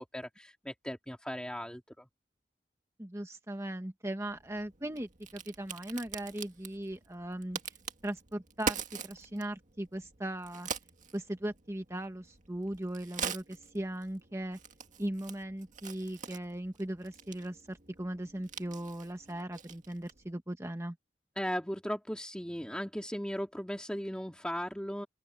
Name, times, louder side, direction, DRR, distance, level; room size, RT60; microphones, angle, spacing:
voice 1, 0.0-2.1 21.4-25.1, equal, 5° left, 2.3 m, -37 dB
voice 2, 3.0-7.6 8.0-10.7 11.1-14.6 15.0-21.0, right 1 dB, 15° right, 1.3 m, -38 dB
Crack, 4.2-20.3, right 6 dB, 45° right, 1.9 m, -44 dB
open air
head